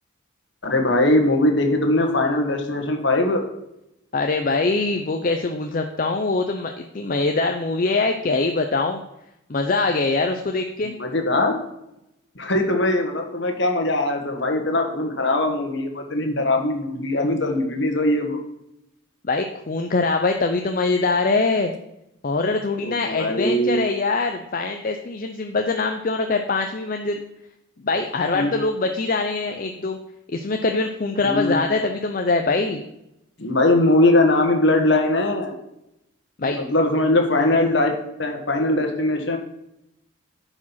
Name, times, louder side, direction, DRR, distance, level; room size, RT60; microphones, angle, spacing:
voice 1, 0.6-3.4 10.8-11.6 12.3-18.4 22.8-23.9 28.3-28.5 31.2-31.6 33.4-35.6 36.4-37.9 38.2-39.4, left 1 dB, 55° left, 4 dB, 1.5 m, -21 dB
voice 2, 4.1-9.0 9.5-10.9 19.2-21.7 22.2-27.2 27.8-30.0 30.3-32.8 36.4-36.6, left 3 dB, 40° left, 5 dB, 0.6 m, -23 dB
10.5 x 5.0 x 5.7 m, 0.85 s
head